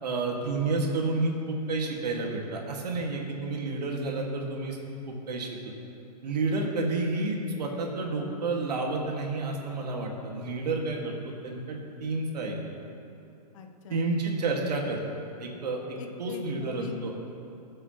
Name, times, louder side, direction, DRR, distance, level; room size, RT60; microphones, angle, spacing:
voice 1, 0.0-4.8 5.1-5.7 6.2-12.6 13.9-15.0 15.4-17.1, right 3 dB, 75° right, 0 dB, 2.2 m, -30 dB
voice 2, 13.5-14.1 16.0-17.1, left 6 dB, 50° left, 5 dB, 1.1 m, -42 dB
22.0 x 7.9 x 3.2 m, 2.8 s
hypercardioid pair, 145°, 21 cm